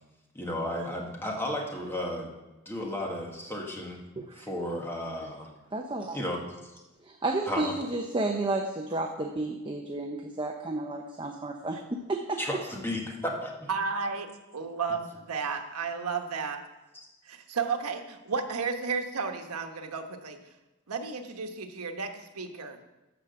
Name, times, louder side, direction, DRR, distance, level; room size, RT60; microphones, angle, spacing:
voice 1, 0.4-2.3 2.7-4.0 4.3-5.5 6.1-6.8 7.5-7.7 12.4-13.7 16.9-17.1, left 1 dB, 10° left, 0 dB, 1.7 m, -34 dB
voice 2, 5.7-6.2 7.0-12.4, right 2 dB, 20° right, 3 dB, 0.7 m, -32 dB
voice 3, 13.7-14.3 14.5-16.6 17.3-20.4 20.9-22.8, right 5 dB, 90° right, 5 dB, 1.2 m, -33 dB
13.0 x 5.0 x 6.9 m, 1.0 s
head